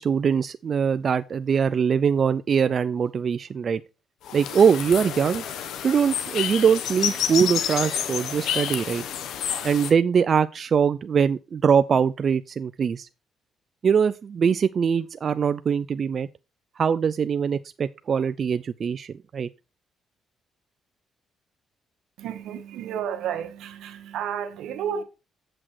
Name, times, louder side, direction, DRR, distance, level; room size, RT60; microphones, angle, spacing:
voice 1, 0.0-3.8 4.3-5.4 5.8-9.0 9.6-13.1 13.8-16.3 16.8-19.5, right 7 dB, 50° right, 0.4 m, -22 dB
sound 1, 4.2-9.9, left 9 dB, 80° left, 1.0 m, -29 dB
voice 2, 22.2-25.0, right 8 dB, 85° right, 1.3 m, -31 dB
7.6 x 6.0 x 4.7 m
cardioid pair, 90°, 0 cm